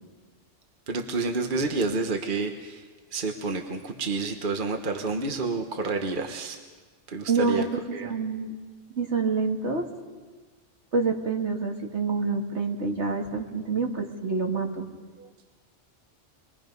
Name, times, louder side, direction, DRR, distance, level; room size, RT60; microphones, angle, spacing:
voice 1, 0.9-6.6 7.1-7.7 7.9-8.1 15.2-15.3, right 3 dB, 45° right, 4 dB, 1.4 m, -29 dB
voice 2, 7.3-8.5 9.0-9.9 10.9-14.9, right 4 dB, 70° right, 2 dB, 2.3 m, -27 dB
26.0 x 22.0 x 5.3 m, 1.4 s
omnidirectional pair, 1.2 m